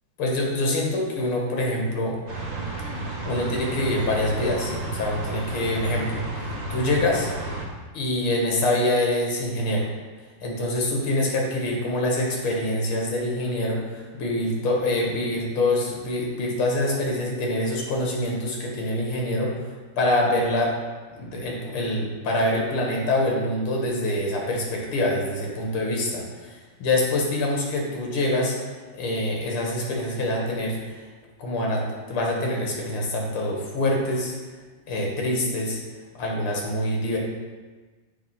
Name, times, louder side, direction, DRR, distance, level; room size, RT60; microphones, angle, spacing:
voice 1, 0.2-2.2 3.2-7.3 7.9-9.9 10.4-19.6 20.0-20.7 21.1-31.1 31.4-34.4 34.9-35.8 36.2-37.2, left 1 dB, 80° left, -1 dB, 2.2 m, -25 dB
sound 1, 2.3-7.6, right 1 dB, 40° right, 0.7 m, -32 dB
7.2 x 3.5 x 5.5 m, 1.3 s
omnidirectional pair, 2.3 m